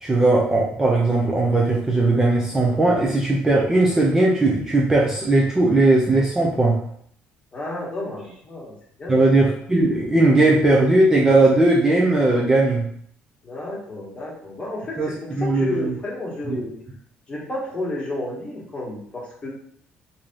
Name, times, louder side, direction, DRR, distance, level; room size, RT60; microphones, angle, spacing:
voice 1, 0.0-6.8 9.1-12.8 15.0-15.9 16.5-16.6, right 2 dB, 15° right, -3 dB, 0.6 m, -18 dB
voice 2, 7.5-8.7 9.0-9.4 13.4-16.8 17.3-19.5, left 1 dB, 25° left, -4 dB, 1.4 m, -31 dB
3.2 x 2.8 x 3.7 m, 0.66 s
cardioid pair, 115°, 4 cm